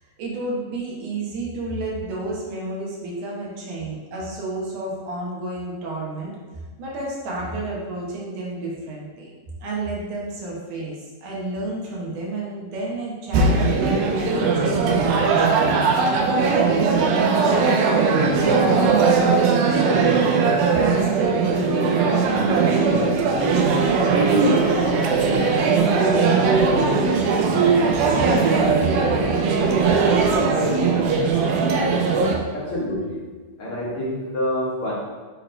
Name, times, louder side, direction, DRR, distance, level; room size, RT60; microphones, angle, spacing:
voice 1, 0.2-6.3 6.8-9.3 9.6-15.7 16.3-20.1 20.6-23.0 23.3-23.6 23.9-25.4 25.9-30.7, right 2 dB, 70° right, -4 dB, 2.5 m, -30 dB
sound 1, 13.3-32.4, right 4 dB, 90° right, 2.5 m, -19 dB
voice 2, 32.5-33.2 33.6-34.9, left 1 dB, 50° left, -8 dB, 1.9 m, -27 dB
6.9 x 3.1 x 5.0 m, 1.4 s
omnidirectional pair, 4.0 m